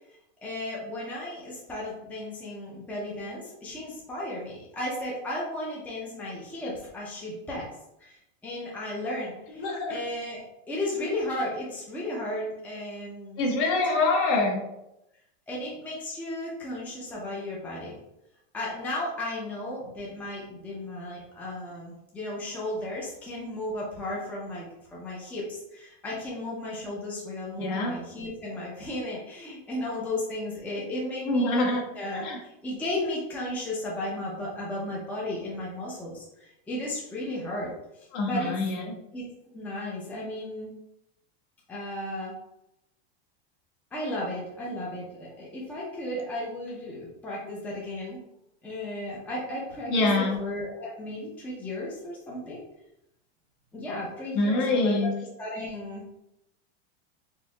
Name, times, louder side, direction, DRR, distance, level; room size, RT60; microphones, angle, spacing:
voice 1, 0.4-7.7 8.0-13.5 15.5-18.0 18.5-37.7 38.2-38.5 39.1-40.7 41.7-42.3 43.9-48.2 48.6-52.6 53.7-55.1 55.4-56.0, left 1 dB, 5° left, -5 dB, 0.5 m, -34 dB
voice 2, 9.6-10.0 13.4-14.6 27.6-28.0 31.2-31.8 32.1-32.4 38.1-39.0 49.9-50.4 54.3-55.1, left 2 dB, 50° left, 0 dB, 1.0 m, -25 dB
4.3 x 2.7 x 2.3 m, 0.86 s
supercardioid pair, 145°, 32 cm